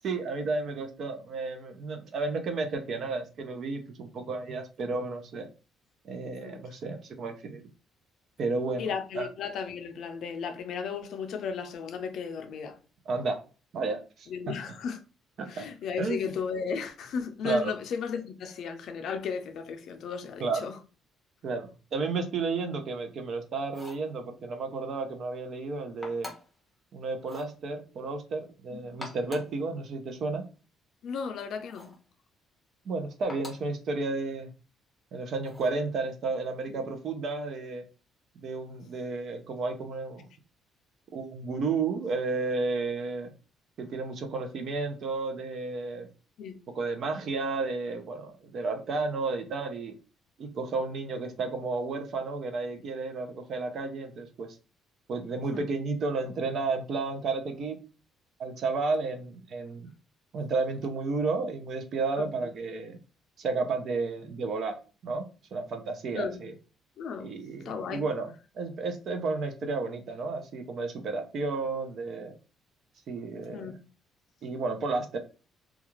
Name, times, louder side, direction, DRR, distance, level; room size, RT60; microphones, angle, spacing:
voice 1, 0.0-5.5 6.0-7.6 8.4-9.3 13.1-13.4 13.7-14.5 15.4-15.7 16.0-16.3 17.4-17.7 20.4-20.7 21.4-26.3 26.9-30.4 32.9-34.5 35.1-37.8 38.4-40.3 41.1-43.3 43.8-46.1 46.7-49.9 50.4-54.5 55.1-57.8 58.4-59.9 60.3-63.0 63.4-64.8 65.0-65.3 65.5-66.5 67.2-72.3 73.1-73.8 74.4-75.2, right 3 dB, 55° right, 0.6 m, -32 dB
voice 2, 8.8-12.8 14.3-15.0 15.5-20.8 28.7-28.9 31.0-31.9 36.7-36.8 46.4-46.6 55.5-55.7 62.2-62.5 66.1-66.4 67.0-67.3 67.6-68.0 73.5-73.8, left 6 dB, 65° left, 0.4 m, -35 dB
sound 1, 23.6-24.1 26.0-26.6 27.2-27.5 28.8-29.6 31.7-32.0 33.3-33.7 35.4-35.8, left 2 dB, 5° left, 0.7 m, -45 dB
2.4 x 2.3 x 3.0 m
cardioid pair, 120°, 0 cm